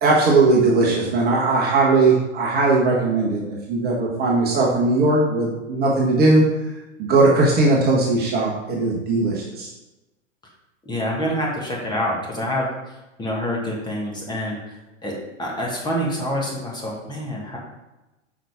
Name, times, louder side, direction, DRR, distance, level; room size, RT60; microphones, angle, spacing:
voice 1, 0.0-6.4 7.0-9.7, right 3 dB, 25° right, -3 dB, 1.1 m, -19 dB
voice 2, 10.8-17.6, equal, 10° left, -3 dB, 1.4 m, -27 dB
5.7 x 4.9 x 3.5 m, 1.0 s
figure-of-eight pair, 105°, 39 cm